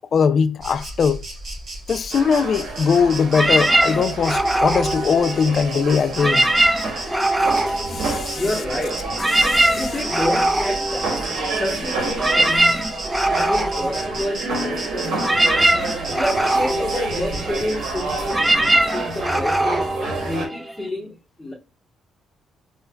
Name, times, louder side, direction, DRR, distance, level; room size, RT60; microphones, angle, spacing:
voice 1, 0.1-1.2 1.9-6.5 7.9-8.4 9.4-9.8, left 6 dB, 55° left, 0.3 m, -20 dB
Insect, 0.6-19.8, right 2 dB, 50° right, 1.2 m, -34 dB
sound 1, 2.1-20.5, right 3 dB, 75° right, 0.9 m, -30 dB
sound 2, 3.3-5.7 6.1-8.6 8.9-20.9, right 1 dB, 10° right, 0.5 m, -22 dB
voice 2, 8.3-9.0 9.6-13.0 13.3-15.4 16.1-21.5, left 1 dB, 10° left, 1.1 m, -29 dB
4.3 x 2.2 x 2.3 m
cardioid pair, 90°, 0 cm